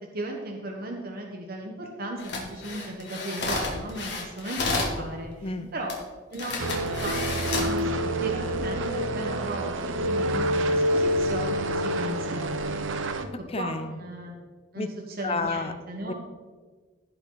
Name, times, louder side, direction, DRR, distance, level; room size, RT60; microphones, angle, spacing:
voice 1, 0.1-6.0 6.3-12.5 13.6-14.3 14.7-16.1, right 1 dB, 50° right, 1 dB, 1.2 m, -36 dB
sound 1, 2.2-5.0 5.9-6.0 6.3-7.8 8.3-8.6, left 3 dB, 60° left, 2.2 m, -31 dB
voice 2, 5.4-5.7 13.5-13.9 14.8-14.9 15.2-15.7 16.1-16.2, left 3 dB, 30° left, 9 dB, 0.6 m, -30 dB
sound 2, 6.6-13.2, right 1 dB, 80° right, 0.7 m, -27 dB
16.0 x 5.8 x 3.9 m, 1.4 s
head